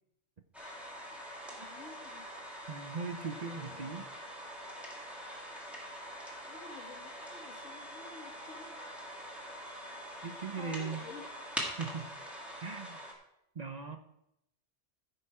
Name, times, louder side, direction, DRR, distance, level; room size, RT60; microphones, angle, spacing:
sound 1, 0.5-13.1, equal, ahead, 2.0 m, -44 dB
voice 1, 1.5-2.3 3.5-3.9 6.4-8.8 10.5-11.2, left 4 dB, 85° left, 3 dB, 1.8 m, -51 dB
voice 2, 2.7-4.1 10.2-11.0 11.8-12.1 12.6-13.0 13.6-14.0, right 5 dB, 45° right, 6 dB, 0.6 m, -39 dB
15.0 x 6.0 x 4.8 m, 0.82 s
omnidirectional pair, 1.2 m